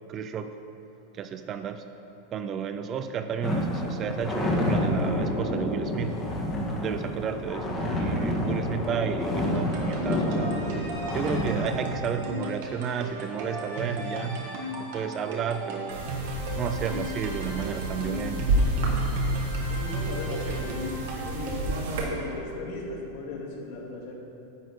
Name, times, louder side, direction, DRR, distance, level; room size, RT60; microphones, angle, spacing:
voice 1, 0.1-0.5 1.1-1.8 2.3-6.2 6.7-10.6 11.1-16.1 16.5-18.4, right 7 dB, 25° right, 9 dB, 0.3 m, -32 dB
sound 1, 3.4-12.0, left 1 dB, 15° left, 1.3 m, -28 dB
sound 2, 9.5-21.8, right 1 dB, 55° right, 1.6 m, -35 dB
sound 3, 15.9-22.0, right 1 dB, 75° right, 2.1 m, -30 dB
voice 2, 19.7-21.6 21.9-24.2, left 2 dB, 60° left, -4 dB, 2.3 m, -37 dB
11.0 x 4.1 x 7.8 m, 2.8 s
supercardioid pair, 165°, 0 cm